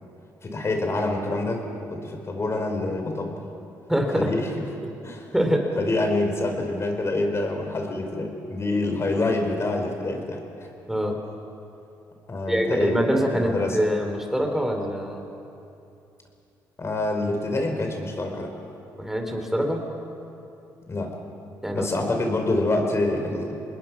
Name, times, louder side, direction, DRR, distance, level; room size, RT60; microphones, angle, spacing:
voice 1, 0.4-1.6 1.9-3.4 4.1-4.5 5.0-5.3 5.7-10.4 12.3-12.9 13.3-13.8 16.8-18.5 20.9-21.2 21.7-23.6, left 2 dB, 35° left, 3 dB, 4.6 m, -26 dB
voice 2, 3.9-4.3 5.3-5.7 10.9-11.2 12.5-15.3 19.0-19.8 21.6-21.9, equal, 5° right, 3 dB, 4.0 m, -24 dB
27.0 x 20.5 x 6.1 m, 2.7 s
supercardioid pair, 75°, 8 cm